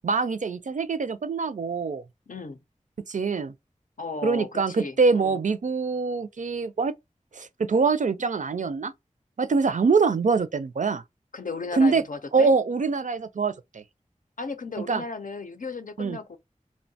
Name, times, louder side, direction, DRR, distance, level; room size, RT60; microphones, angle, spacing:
voice 1, 0.0-2.0 3.1-3.5 4.2-6.9 7.3-8.9 9.4-11.0 11.7-12.0 12.3-13.8 14.9-15.0 16.0-16.2, right 4 dB, 65° right, 0.4 m, -24 dB
voice 2, 2.3-2.6 4.0-5.4 11.3-12.5 14.4-16.4, left 4 dB, 80° left, 0.6 m, -35 dB
2.7 x 2.2 x 2.6 m
wide cardioid pair, 50°, 14 cm